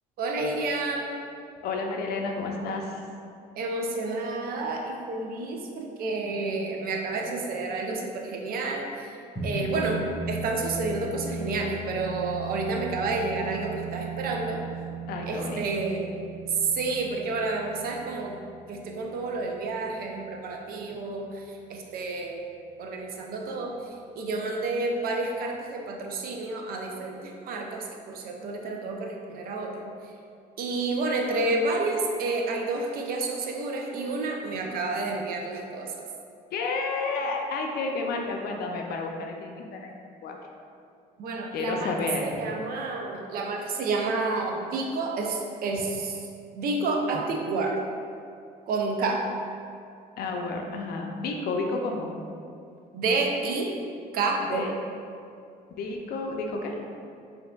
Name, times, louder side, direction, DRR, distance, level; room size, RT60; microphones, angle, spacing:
voice 1, 0.2-1.1 3.6-9.2 9.4-14.6 15.3-16.1 16.5-18.4 18.7-22.4 22.8-29.9 30.6-36.0 41.2-41.9 42.2-46.3 46.5-47.8 48.7-49.2 52.9-53.7 54.1-54.7, right 3 dB, 60° right, 1 dB, 0.5 m, -30 dB
voice 2, 1.6-3.0 15.1-15.6 36.5-40.4 41.5-42.2 45.7-45.8 50.2-52.1 54.5-54.7 55.8-56.8, left 3 dB, 65° left, 2 dB, 0.5 m, -31 dB
sound 1, 9.4-20.0, right 3 dB, 15° left, 1.2 m, -37 dB
4.4 x 2.6 x 2.2 m, 2.4 s
cardioid pair, 110°, 17 cm